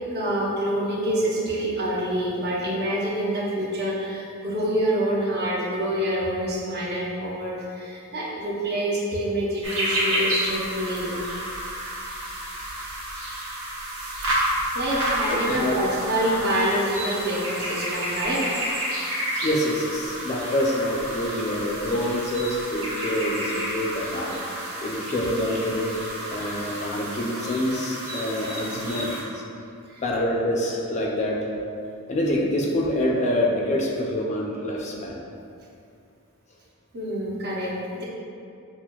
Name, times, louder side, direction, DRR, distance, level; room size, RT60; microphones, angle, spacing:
voice 1, 0.1-11.2 14.7-18.4 29.9-30.0 36.9-38.0, right 1 dB, 50° right, -5 dB, 0.6 m, -26 dB
sound 1, 9.6-29.2, right 1 dB, 65° right, 0.9 m, -30 dB
voice 2, 15.3-15.8 19.4-24.4 24.8-25.9 26.3-29.4 30.0-31.4 32.1-35.2, left 1 dB, 30° left, -2 dB, 0.3 m, -26 dB
6.0 x 2.1 x 2.2 m, 2.5 s
head